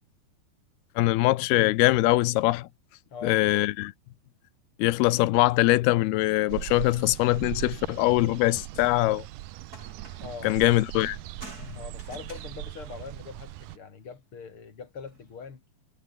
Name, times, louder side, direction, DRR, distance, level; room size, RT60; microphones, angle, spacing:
voice 1, 1.0-2.7 3.2-3.9 4.8-9.3 10.4-11.2, left 18 dB, 85° left, 2.8 m, -22 dB
voice 2, 3.1-3.5 10.2-10.6 11.7-15.6, left 6 dB, 35° left, 3.9 m, -42 dB
sound 1, 6.5-13.8, right 16 dB, 75° right, 1.9 m, -40 dB
sound 2, 9.7-10.4 11.0-13.7 15.0-15.4, right 2 dB, 20° right, 8.5 m, -49 dB
omnidirectional pair, 4.5 m